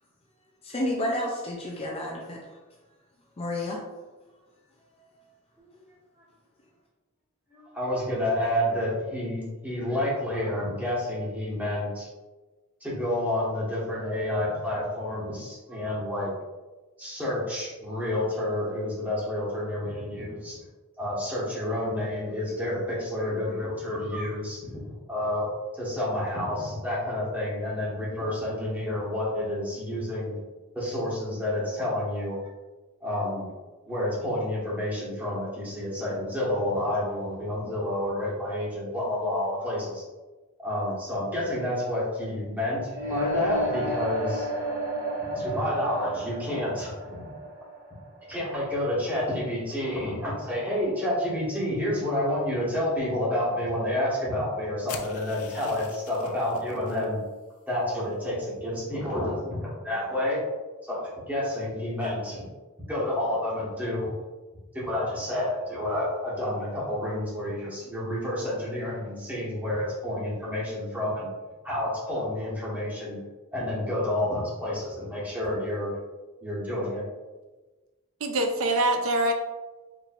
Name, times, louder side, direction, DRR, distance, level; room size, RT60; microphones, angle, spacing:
voice 1, 0.6-2.4 3.4-3.8, left 1 dB, 25° left, -2 dB, 0.5 m, -30 dB
voice 2, 7.5-12.1 12.8-16.3 17.0-20.6 21.0-24.8 25.1-25.5 25.8-30.4 30.7-32.4 33.0-33.4 33.8-40.0 40.6-44.5 45.3-46.9 47.2-47.3 48.3-57.2 57.7-60.4 60.9-62.4 62.9-64.1 64.7-71.3 71.6-73.2 73.5-75.9 76.4-77.0, left 1 dB, 10° right, -9 dB, 1.5 m, -29 dB
sound 1, 42.9-48.8, right 1 dB, 40° right, 1.4 m, -32 dB
sound 2, 54.9-57.1, left 8 dB, 85° left, 0.4 m, -43 dB
voice 3, 78.2-79.3, right 1 dB, 65° right, 4 dB, 0.5 m, -24 dB
4.4 x 3.2 x 2.5 m, 1.2 s
head